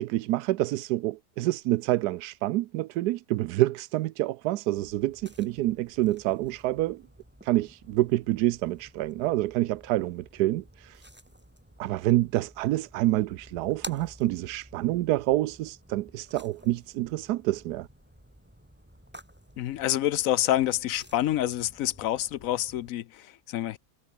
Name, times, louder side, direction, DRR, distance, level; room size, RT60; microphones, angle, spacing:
voice 1, 0.0-7.0 7.4-11.0 11.8-17.9, right 16 dB, 80° right, 1.1 m, -27 dB
sound 1, 4.8-22.9, equal, 5° right, 4.7 m, -51 dB
voice 2, 19.6-23.8, left 13 dB, 70° left, 0.9 m, -27 dB
omnidirectional pair, 1.7 m